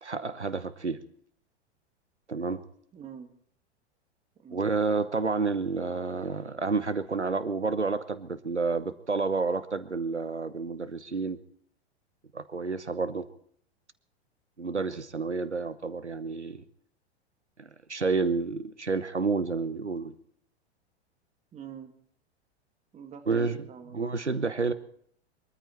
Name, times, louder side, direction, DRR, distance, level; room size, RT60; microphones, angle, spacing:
voice 1, 0.0-1.0 2.3-2.6 4.5-11.4 12.3-13.3 14.6-16.6 17.6-20.1 23.3-24.7, right 4 dB, 90° right, 13 dB, 1.0 m, -30 dB
voice 2, 2.9-3.3 4.4-4.6 21.5-21.9 22.9-24.2, right 7 dB, 20° right, 5 dB, 2.2 m, -44 dB
23.0 x 14.0 x 4.5 m, 0.65 s
figure-of-eight pair, 95°, 34 cm